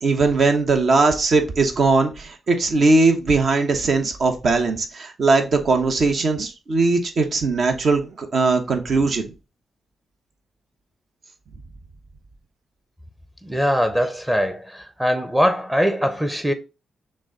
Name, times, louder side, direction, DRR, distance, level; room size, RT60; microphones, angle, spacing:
voice 1, 0.0-9.3, right 3 dB, 60° right, 1.0 m, -19 dB
voice 2, 13.4-16.5, equal, 5° right, 0.7 m, -21 dB
6.1 x 2.2 x 3.7 m
cardioid pair, 75°, 0 cm